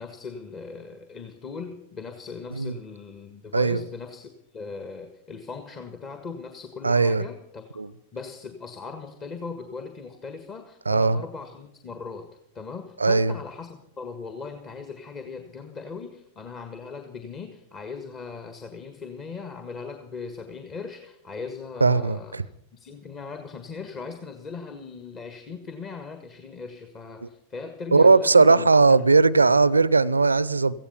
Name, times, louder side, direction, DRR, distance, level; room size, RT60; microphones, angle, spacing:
voice 1, 0.0-7.7 8.1-29.1, left 4 dB, 30° left, 1.6 m, -39 dB
voice 2, 6.8-7.2 7.8-7.9 10.9-11.2 13.0-13.3 21.8-22.4 27.2-27.3 27.9-30.7, right 4 dB, 80° right, 0.6 m, -18 dB
17.0 x 15.5 x 5.6 m
figure-of-eight pair, 90°, 0 cm